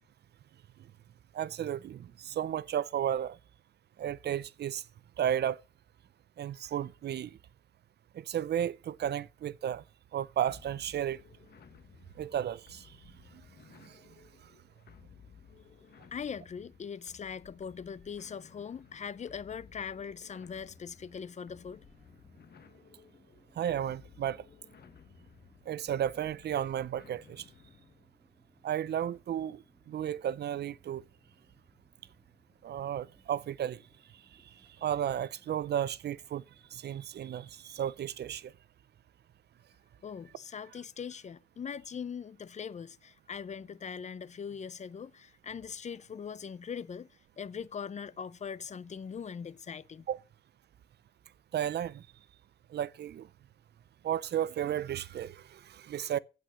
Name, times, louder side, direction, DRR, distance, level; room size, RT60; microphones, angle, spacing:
voice 1, 1.3-3.4 4.0-4.9 5.2-5.6 6.4-7.4 8.1-9.8 10.1-11.2 12.2-13.0 13.3-13.4 13.8-14.0 23.6-24.5 25.7-27.5 28.6-31.0 32.6-33.8 34.3-34.5 34.8-36.4 36.7-38.5 50.1-50.2 51.5-52.1 52.7-53.3 54.0-56.2, right 10 dB, 75° right, 0.5 m, -33 dB
sound 1, 10.5-28.1, left 7 dB, 65° left, 1.3 m, -57 dB
voice 2, 16.1-21.8 40.0-50.1, left 6 dB, 40° left, 0.5 m, -41 dB
sound 2, 20.4-38.5, right 1 dB, 10° right, 2.8 m, -66 dB
9.3 x 8.7 x 6.1 m
wide cardioid pair, 135°, 18 cm